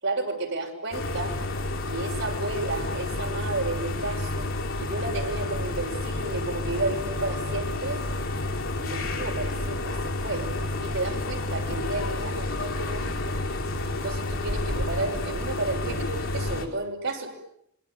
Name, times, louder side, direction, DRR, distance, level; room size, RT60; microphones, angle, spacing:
voice 1, 0.0-1.4 1.9-4.5 4.8-8.0 8.8-10.5 10.8-13.3 13.9-17.3, right 2 dB, 65° right, 1 dB, 6.6 m, -32 dB
sound 1, 0.9-16.7, left 2 dB, 80° left, 5.0 m, -30 dB
27.5 x 23.5 x 9.2 m, 0.73 s
head